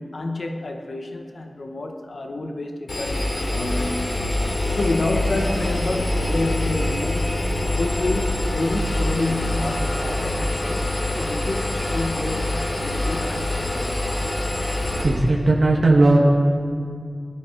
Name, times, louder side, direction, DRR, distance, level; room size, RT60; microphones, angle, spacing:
voice 1, 0.0-4.1 4.5-7.2 7.7-10.9 11.2-13.9, left 2 dB, 70° left, 3 dB, 1.6 m, -29 dB
Engine, 2.9-15.0, left 1 dB, 90° left, 4.0 m, -25 dB
voice 2, 14.7-16.2, right 2 dB, 75° right, -3 dB, 2.1 m, -17 dB
23.5 x 11.0 x 4.9 m, 2.2 s
wide cardioid pair, 55°, 0 cm